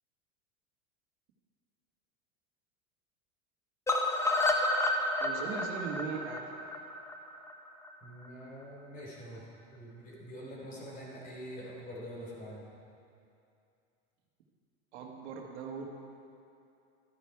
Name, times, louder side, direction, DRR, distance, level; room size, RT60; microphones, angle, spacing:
sound 1, 3.9-7.9 8.2-8.3 8.6-8.7 9.0-9.1, left 2 dB, 10° left, 0.7 m, -30 dB
voice 1, 5.2-6.4 14.9-15.8, right 6 dB, 80° right, 1 dB, 1.8 m, -39 dB
voice 2, 8.0-12.7, equal, 25° left, -3 dB, 3.1 m, -45 dB
13.0 x 9.3 x 4.7 m, 2.5 s
supercardioid pair, 140°, 34 cm